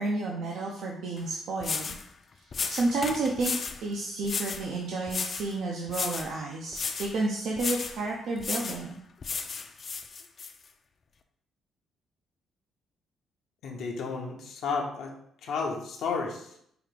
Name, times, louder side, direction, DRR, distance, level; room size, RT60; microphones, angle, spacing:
voice 1, 0.0-2.0 2.4-3.5 3.8-9.0, right 2 dB, 70° right, -1 dB, 0.5 m, -31 dB
sound 1, 1.2-1.3 1.6-2.0 2.5-3.8 4.2-4.7 5.1-5.5 5.9-6.3 6.7-7.1 7.6-8.0 8.4-8.8 9.2-10.5, left 5 dB, 45° left, 0.4 m, -33 dB
voice 2, 13.6-15.1 15.4-16.6, left 4 dB, 75° left, 0 dB, 0.7 m, -32 dB
4.9 x 2.4 x 3.3 m, 0.72 s
cardioid pair, 95°, 0 cm